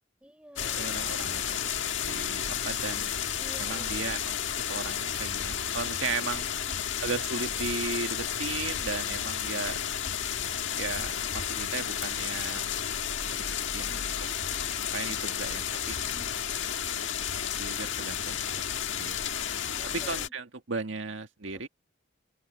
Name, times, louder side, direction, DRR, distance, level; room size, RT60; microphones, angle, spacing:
voice 1, 0.2-1.1 3.4-4.1 9.2-9.3 13.7-14.0 15.9-16.3 19.8-20.3 21.5-21.6, equal, 5° right, 6.1 m, -51 dB
sound 1, 0.6-20.3, left 9 dB, 85° left, 1.6 m, -32 dB
voice 2, 0.8-1.7 2.0-3.2 3.6-4.4 4.7-6.5 7.0-9.8 10.7-12.6 13.3-13.4 13.7-14.0 14.9-16.0 17.6-18.4 19.0-19.1 20.1-21.7, right 4 dB, 85° right, 1.8 m, -36 dB
open air
head